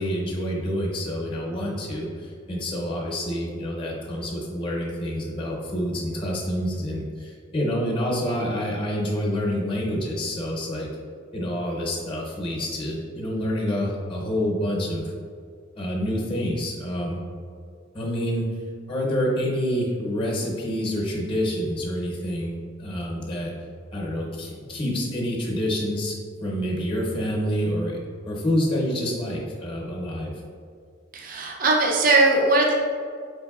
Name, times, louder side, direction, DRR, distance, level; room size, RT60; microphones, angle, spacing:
voice 1, 0.0-10.9 11.3-15.1 15.8-17.2 17.9-18.5 18.9-23.5 23.9-28.0 28.3-30.3, equal, 25° left, -2 dB, 0.7 m, -27 dB
voice 2, 31.1-32.7, right 2 dB, 45° right, 0 dB, 0.4 m, -19 dB
5.0 x 3.3 x 2.3 m, 2.2 s
head